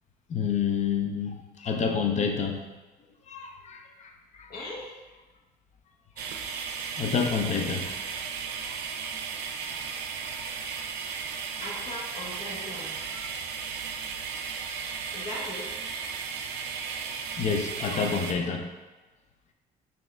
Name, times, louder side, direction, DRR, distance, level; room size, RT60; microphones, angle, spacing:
voice 1, 0.3-2.6 3.3-4.5 6.2-6.3 7.0-8.1 8.6-8.8 9.7-9.8 10.1-10.3 10.6-10.7 13.0-13.5 17.4-18.7, left 6 dB, 45° left, 4 dB, 0.6 m, -29 dB
voice 2, 4.5-4.9 11.6-13.0 15.1-15.8, left 1 dB, 60° left, -4 dB, 1.2 m, -39 dB
sound 1, 6.2-18.3, right 6 dB, 90° right, 0.5 m, -35 dB
5.5 x 2.8 x 3.3 m, 1.2 s
cardioid pair, 110°, 17 cm